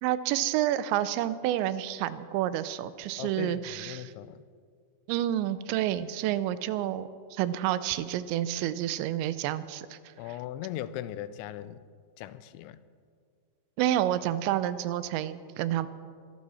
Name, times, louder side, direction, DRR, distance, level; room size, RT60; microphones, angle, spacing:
voice 1, 0.0-4.1 5.1-10.0 13.8-15.9, right 12 dB, 85° right, 14 dB, 2.8 m, -29 dB
voice 2, 3.2-4.4 10.2-11.8 12.2-12.8, left 12 dB, 85° left, 15 dB, 2.9 m, -39 dB
23.0 x 12.5 x 4.2 m, 2.1 s
omnidirectional pair, 5.2 m